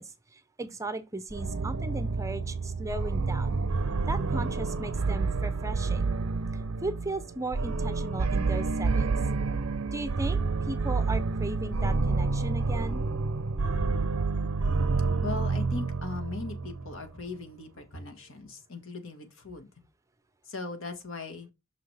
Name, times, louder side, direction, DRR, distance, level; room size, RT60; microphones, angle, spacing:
voice 1, 0.0-3.6 4.1-6.0 6.5-9.2 9.9-13.0, right 2 dB, 15° right, 0.6 m, -37 dB
sound 1, 1.3-17.0, right 4 dB, 80° right, 0.6 m, -29 dB
voice 2, 15.2-19.7 20.4-21.5, left 3 dB, 65° left, 1.6 m, -39 dB
6.2 x 5.7 x 3.3 m
head